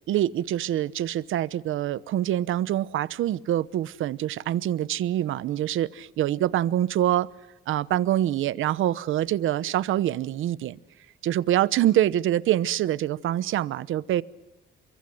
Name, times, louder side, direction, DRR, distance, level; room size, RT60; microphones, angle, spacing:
voice 1, 0.1-7.3 7.7-10.8 11.2-14.2, right 12 dB, 85° right, 19 dB, 1.0 m, -25 dB
29.5 x 24.0 x 7.8 m, 0.86 s
cardioid pair, 160°, 20 cm